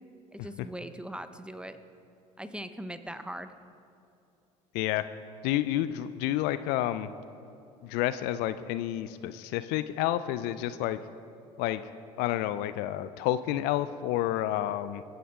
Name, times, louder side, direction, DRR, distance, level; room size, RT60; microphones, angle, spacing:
voice 1, 0.3-1.8 2.4-3.5, right 1 dB, 5° right, 10 dB, 0.9 m, -40 dB
voice 2, 4.7-5.1 5.4-7.1 7.8-11.0 11.6-11.8 12.2-15.0, left 13 dB, 65° left, 13 dB, 0.5 m, -29 dB
24.0 x 9.4 x 3.7 m, 2.7 s
hypercardioid pair, 60°, 18 cm